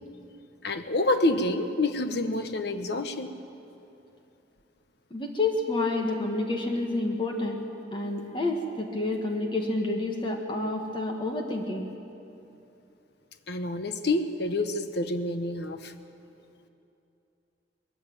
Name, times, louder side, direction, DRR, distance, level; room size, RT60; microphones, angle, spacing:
voice 1, 0.6-3.4 13.5-15.9, left 2 dB, 65° left, 9 dB, 1.1 m, -28 dB
voice 2, 5.1-7.6 7.9-11.9, left 2 dB, 30° left, 2 dB, 1.6 m, -29 dB
21.5 x 14.5 x 9.4 m, 2.8 s
head